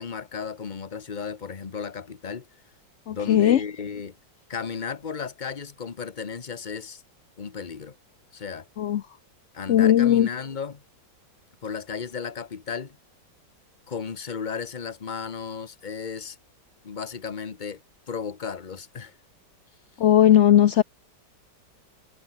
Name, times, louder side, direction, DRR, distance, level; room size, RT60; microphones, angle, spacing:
voice 1, 0.0-2.5 3.1-4.2 4.5-7.0 7.4-8.0 8.3-8.7 9.5-10.8 11.6-13.0 13.9-16.4 16.8-17.8 18.1-19.2, left 6 dB, 30° left, 1.1 m, -34 dB
voice 2, 3.1-3.6 8.8-9.0 9.7-10.3 20.0-20.8, left 11 dB, 65° left, 0.7 m, -17 dB
omnidirectional pair, 2.0 m